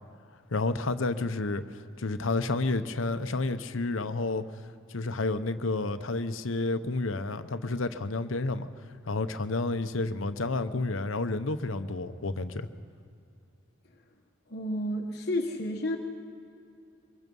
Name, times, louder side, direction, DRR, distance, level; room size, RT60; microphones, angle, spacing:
voice 1, 0.5-1.6 2.0-4.4 4.9-8.7 9.0-12.7, left 3 dB, 80° left, 10 dB, 0.9 m, -30 dB
voice 2, 14.5-16.0, left 1 dB, 50° left, 1 dB, 1.2 m, -31 dB
24.0 x 21.5 x 5.4 m, 2.5 s
head